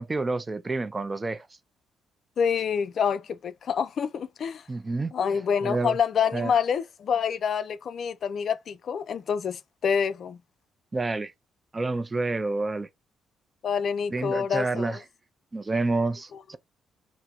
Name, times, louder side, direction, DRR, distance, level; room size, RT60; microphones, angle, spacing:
voice 1, 0.0-1.5 4.7-5.1 5.6-6.0 6.3-6.5 10.9-11.3 11.7-12.9 14.1-15.0 15.5-16.6, right 3 dB, 25° right, 0.4 m, -28 dB
voice 2, 2.4-4.6 5.1-10.4 13.6-15.0, left 7 dB, 55° left, 0.3 m, -27 dB
4.2 x 2.0 x 2.3 m
cardioid pair, 90°, 0 cm